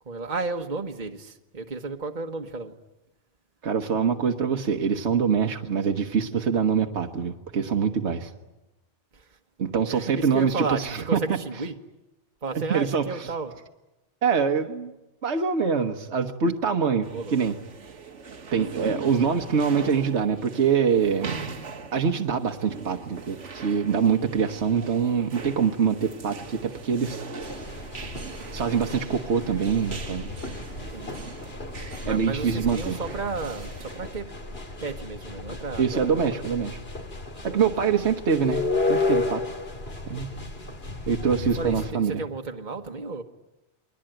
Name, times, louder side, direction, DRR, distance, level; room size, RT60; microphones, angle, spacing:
voice 1, 0.1-2.7 9.1-9.2 9.9-11.7 12.4-13.5 17.1-17.4 30.9-31.2 32.0-34.3 34.8-36.2 37.5-37.7 41.6-43.2, right 3 dB, 40° right, 3 dB, 1.5 m, -33 dB
voice 2, 3.6-8.3 9.6-11.4 12.5-13.3 14.2-14.9 15.2-17.6 18.5-21.3 21.9-27.2 28.5-30.3 32.0-33.0 35.8-36.8 37.4-39.4 40.1-40.3 41.1-42.2, right 6 dB, 70° right, 4 dB, 1.6 m, -24 dB
sound 1, 17.0-34.1, right 5 dB, 85° right, 1.8 m, -41 dB
sound 2, 27.4-41.9, left 3 dB, 55° left, 2.9 m, -33 dB
29.0 x 22.0 x 9.1 m, 0.97 s
omnidirectional pair, 1.2 m